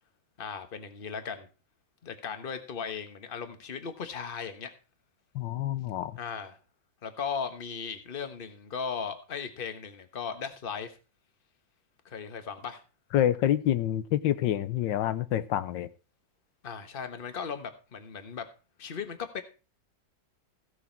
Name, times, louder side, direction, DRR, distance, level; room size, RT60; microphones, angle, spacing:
voice 1, 0.4-1.5 2.0-4.7 6.2-6.6 7.0-10.9 12.0-12.8 16.6-18.5 18.8-19.4, left 6 dB, 35° left, 1.3 m, -37 dB
voice 2, 5.3-6.2 13.1-15.9, left 11 dB, 90° left, 1.4 m, -27 dB
16.0 x 6.5 x 4.5 m
omnidirectional pair, 2.0 m